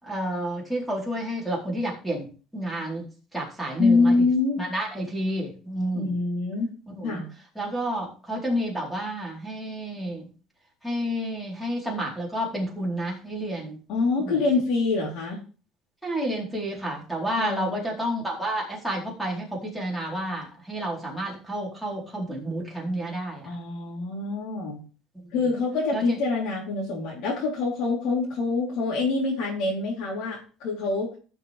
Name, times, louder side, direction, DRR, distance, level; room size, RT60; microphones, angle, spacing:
voice 1, 0.0-3.1 3.3-4.2 4.6-6.1 6.9-7.2 7.6-10.3 10.8-13.8 14.2-14.4 16.0-23.6 25.9-26.2, right 1 dB, ahead, -4 dB, 4.2 m, -30 dB
voice 2, 3.8-4.6 5.9-6.7 7.0-7.3 13.9-15.4 17.4-17.8 23.4-24.8 25.3-31.1, left 3 dB, 70° left, -5 dB, 4.0 m, -25 dB
14.5 x 6.7 x 3.5 m, 0.37 s
cardioid pair, 135°, 0 cm